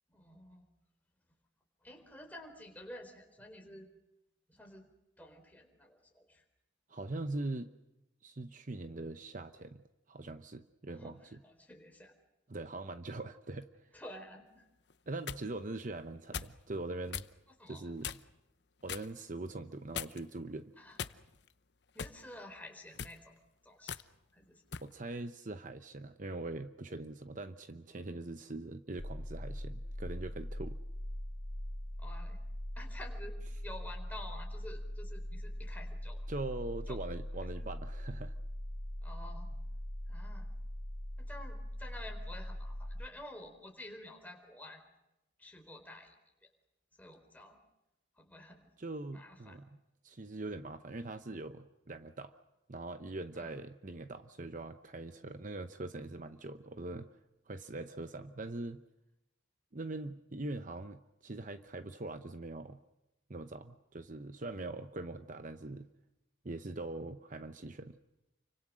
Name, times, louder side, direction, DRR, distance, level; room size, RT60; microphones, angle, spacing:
voice 1, 0.1-0.6 1.8-3.9 4.5-4.8 5.2-6.4 11.0-12.1 13.9-14.7 17.6-17.9 20.8-21.0 21.9-23.3 23.6-24.0 24.3-24.6 32.0-32.4 32.8-33.4 33.6-36.3 36.9-37.0 39.0-39.5 40.1-40.5 41.2-44.8 45.4-46.1 47.0-47.6 48.2-48.7 49.1-49.6 53.3-53.5, left 1 dB, 10° left, 3 dB, 4.1 m, -50 dB
voice 2, 6.9-7.7 8.2-9.8 10.1-11.4 12.5-13.9 15.1-17.3 17.7-18.2 18.8-20.7 24.8-30.8 36.3-38.3 48.8-49.8 50.0-52.3 52.7-57.1 57.5-58.8 59.7-62.8 63.3-65.9 66.4-68.0, right 2 dB, 40° right, 9 dB, 0.9 m, -42 dB
sound 1, 14.9-15.4 16.3-16.6 17.1-17.3 18.0-18.4 18.9-19.1 19.9-20.4 21.0-21.5 22.0-22.2 22.9-23.2 23.9-24.1 24.7-24.9, left 7 dB, 60° left, 0.8 m, -41 dB
sound 2, 29.0-43.1, equal, 85° left, 2.0 m, -41 dB
29.5 x 25.0 x 6.3 m, 0.93 s
head